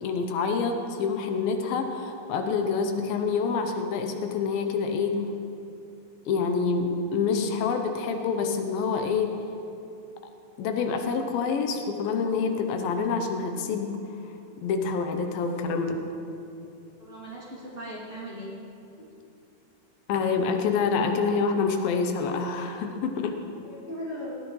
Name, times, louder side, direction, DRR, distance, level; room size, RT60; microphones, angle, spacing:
voice 1, 0.0-5.2 6.3-9.3 10.6-14.0 14.6-16.0 20.1-23.4, left 5 dB, 85° left, 5 dB, 2.6 m, -27 dB
voice 2, 17.0-18.5 19.0-19.1 23.6-24.3, equal, 20° right, -8 dB, 2.7 m, -38 dB
17.5 x 13.0 x 3.2 m, 2.7 s
omnidirectional pair, 4.1 m